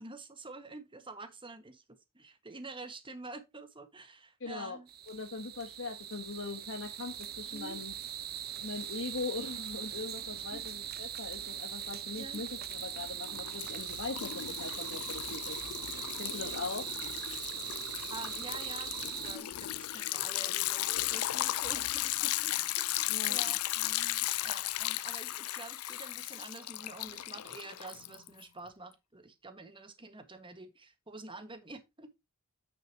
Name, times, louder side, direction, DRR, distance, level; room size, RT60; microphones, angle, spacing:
voice 1, 0.0-4.9 7.5-7.8 10.3-10.6 12.2-12.4 16.0-16.7 18.1-32.2, right 3 dB, 25° right, 1.6 m, -48 dB
voice 2, 4.4-4.8 5.1-7.9 8.6-16.8 23.1-23.4, left 3 dB, 60° left, 1.4 m, -41 dB
sound 1, 4.9-19.4, right 10 dB, 45° right, 1.0 m, -41 dB
Liquid, 11.3-11.9 12.2-28.4, left 15 dB, 85° left, 0.5 m, -35 dB
9.4 x 7.1 x 2.9 m
head